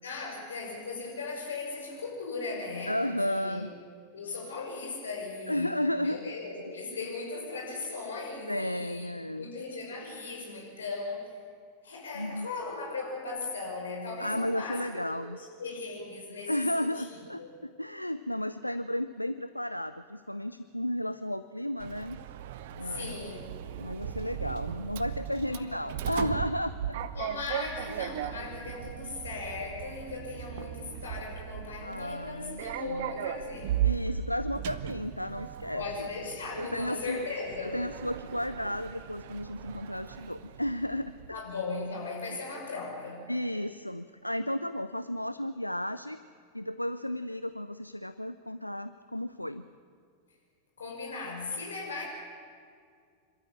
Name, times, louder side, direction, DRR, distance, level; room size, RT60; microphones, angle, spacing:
voice 1, 0.0-3.7 4.1-5.7 6.0-11.3 11.8-17.1 17.4-17.5 22.8-23.4 25.5-26.0 27.1-33.7 35.7-37.8 41.3-43.3 50.8-52.0, left 3 dB, 70° left, -1 dB, 5.8 m, -38 dB
voice 2, 2.9-3.7 5.5-6.2 8.5-9.5 12.1-12.5 14.2-15.4 16.5-22.2 22.8-23.2 23.8-27.0 31.8-32.6 32.9-33.1 33.8-35.8 36.6-37.2 37.6-41.1 43.3-46.2 46.5-49.7, left 1 dB, 90° left, 12 dB, 0.5 m, -33 dB
Sliding door, 21.8-41.4, right 10 dB, 55° right, 0.8 m, -37 dB
26.0 x 13.0 x 8.7 m, 2.2 s
figure-of-eight pair, 90°, 0 cm